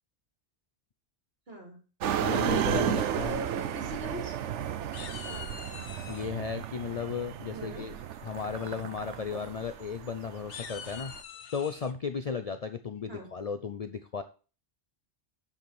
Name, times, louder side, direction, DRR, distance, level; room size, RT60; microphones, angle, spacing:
voice 1, 1.5-1.8 2.6-4.3 5.2-5.6 7.5-7.8 13.1-13.3, right 2 dB, 55° right, 0 dB, 3.3 m, -41 dB
sound 1, 2.0-11.2, right 9 dB, 85° right, 1.0 m, -33 dB
voice 2, 2.2-3.4 6.1-8.0 8.2-11.2 11.5-14.2, left 6 dB, 45° left, 10 dB, 0.5 m, -35 dB
sound 2, 4.0-4.6 4.9-6.3 7.8-8.2 8.6-8.8 9.1-9.2 9.6-9.7 10.3-11.9, left 8 dB, 75° left, 1.1 m, -45 dB
7.1 x 5.8 x 6.0 m, 0.36 s
omnidirectional pair, 1.2 m